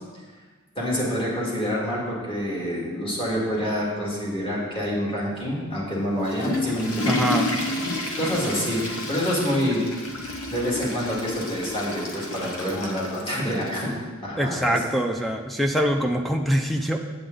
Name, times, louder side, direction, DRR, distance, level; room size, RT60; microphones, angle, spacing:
voice 1, 0.8-7.2 7.9-9.8 10.5-13.9 14.2-14.8, equal, 25° left, -5 dB, 2.0 m, -27 dB
Water / Toilet flush, 6.0-13.8, left 1 dB, 70° left, 1.1 m, -30 dB
voice 2, 7.1-7.5 14.4-17.0, equal, ahead, 4 dB, 0.4 m, -24 dB
8.1 x 7.9 x 3.8 m, 1.4 s
head